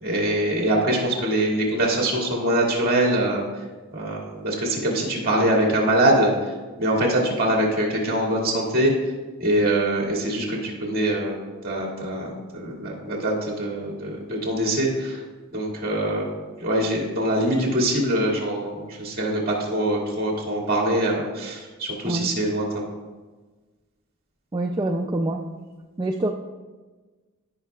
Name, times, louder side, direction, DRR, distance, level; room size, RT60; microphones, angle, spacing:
voice 1, 0.0-3.4 3.9-6.3 6.8-8.9 9.4-11.4 11.6-15.2 15.5-16.3 16.6-22.7, right 1 dB, 45° right, -2 dB, 2.1 m, -23 dB
voice 2, 24.5-25.4 26.0-26.3, right 2 dB, 20° right, 1 dB, 0.4 m, -25 dB
15.5 x 5.5 x 2.3 m, 1.3 s
head